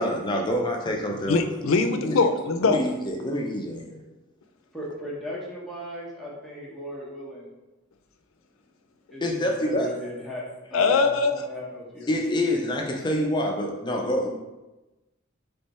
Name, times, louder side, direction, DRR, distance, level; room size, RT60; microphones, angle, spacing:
voice 1, 0.0-1.4 2.0-2.2 2.6-4.0 9.2-9.9 12.1-14.4, left 1 dB, 25° left, 1 dB, 0.5 m, -26 dB
voice 2, 1.3-2.9 10.7-11.3, left 4 dB, 90° left, 8 dB, 0.4 m, -22 dB
voice 3, 4.7-7.5 9.1-10.4 10.7-12.2, left 1 dB, ahead, -6 dB, 1.0 m, -36 dB
3.6 x 3.3 x 4.1 m, 1.1 s
head